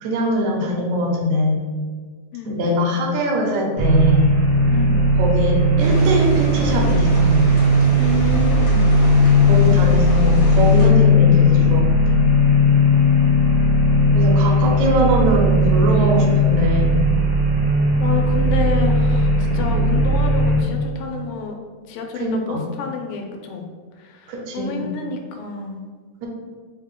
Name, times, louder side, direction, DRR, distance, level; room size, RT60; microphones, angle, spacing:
voice 1, 0.0-1.6 2.5-4.3 5.2-7.5 9.5-12.3 14.1-17.1 19.3-19.6 22.2-22.6 24.3-24.9 26.2-26.3, equal, 80° right, -1 dB, 2.0 m, -22 dB
sound 1, 3.8-20.6, left 1 dB, 60° right, 1.0 m, -16 dB
voice 2, 4.7-5.0 8.0-8.9 13.0-13.2 18.0-21.6 21.9-23.7 24.0-25.8, left 5 dB, 85° left, 2 dB, 2.0 m, -29 dB
sound 2, 5.8-10.9, left 1 dB, 65° left, 0.8 m, -30 dB
4.8 x 2.1 x 3.6 m, 1.5 s
omnidirectional pair, 3.4 m